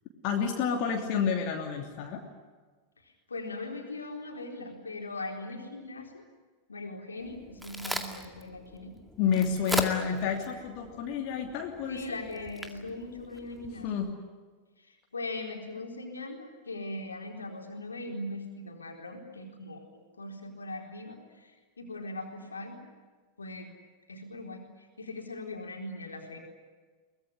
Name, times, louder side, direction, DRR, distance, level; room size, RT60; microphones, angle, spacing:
voice 1, 0.2-2.2 9.2-12.2 13.8-14.1, left 7 dB, 40° left, 1 dB, 2.9 m, -29 dB
voice 2, 3.0-6.2 6.7-8.9 11.9-13.9 14.8-22.8 23.4-23.7 24.1-26.4, left 2 dB, 75° left, 2 dB, 4.2 m, -40 dB
Crack, 7.2-14.1, right 1 dB, 5° right, 2.2 m, -39 dB
23.5 x 20.5 x 9.9 m, 1.4 s
figure-of-eight pair, 90°, 0 cm